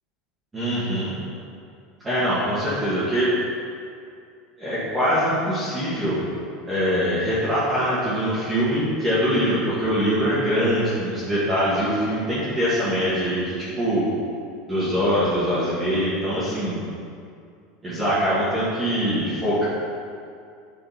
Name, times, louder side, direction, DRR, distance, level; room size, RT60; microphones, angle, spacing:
voice 1, 0.5-1.1 2.0-3.4 4.6-6.2 6.7-14.1 14.7-16.8 17.8-19.7, equal, 10° right, -12 dB, 1.8 m, -23 dB
10.0 x 5.2 x 5.7 m, 2.3 s
supercardioid pair, 170°, 0 cm